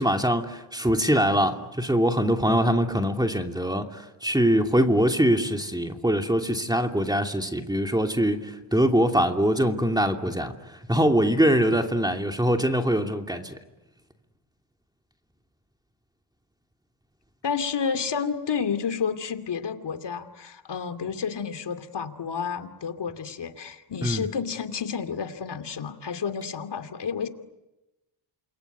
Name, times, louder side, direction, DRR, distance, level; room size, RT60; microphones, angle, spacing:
voice 1, 0.0-13.6 24.0-24.3, equal, 10° right, 4 dB, 2.7 m, -23 dB
voice 2, 17.4-27.3, left 6 dB, 55° left, 9 dB, 2.7 m, -30 dB
28.0 x 22.5 x 9.4 m, 1.0 s
cardioid pair, 65°, 49 cm